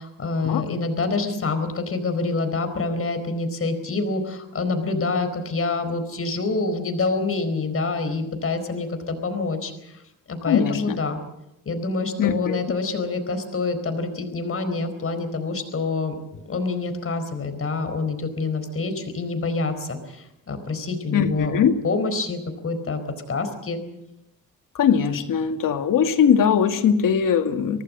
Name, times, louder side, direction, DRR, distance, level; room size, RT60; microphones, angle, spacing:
voice 1, 0.0-10.0 10.3-11.2 11.7-16.1 16.4-23.0 23.3-23.8, left 3 dB, 40° left, 8 dB, 4.3 m, -26 dB
voice 2, 10.5-11.0 12.2-12.6 21.1-21.8 24.7-27.8, left 7 dB, 75° left, 7 dB, 2.2 m, -20 dB
24.5 x 18.5 x 7.6 m, 0.84 s
cardioid pair, 115°, 33 cm